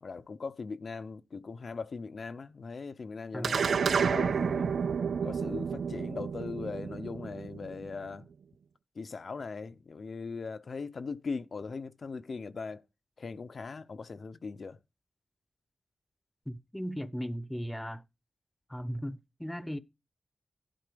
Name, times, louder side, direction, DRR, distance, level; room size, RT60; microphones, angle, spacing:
voice 1, 0.0-4.7 5.2-8.3 9.0-12.8 13.2-14.8, left 4 dB, 65° left, 0.8 m, -40 dB
sound 1, 3.4-8.1, right 6 dB, 90° right, 0.4 m, -30 dB
voice 2, 16.5-18.0 18.7-19.8, equal, 10° left, 0.9 m, -37 dB
11.5 x 4.0 x 6.9 m
wide cardioid pair, 80°, 0 cm